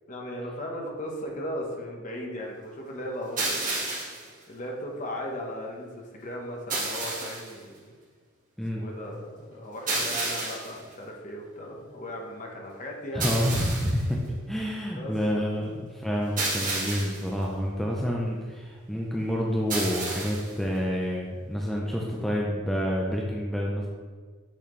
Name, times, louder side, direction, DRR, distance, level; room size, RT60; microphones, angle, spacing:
voice 1, 0.1-3.7 4.5-7.9 8.7-13.2 14.9-15.1, equal, 35° left, -1 dB, 1.1 m, -37 dB
sound 1, 3.4-4.3 6.7-7.5 9.9-10.8 13.2-14.0 16.4-17.3 19.7-20.5, right 2 dB, 40° right, 1.7 m, -30 dB
voice 2, 13.1-14.2 14.5-23.9, equal, ahead, -3 dB, 0.5 m, -28 dB
8.7 x 4.2 x 3.2 m, 1.5 s
head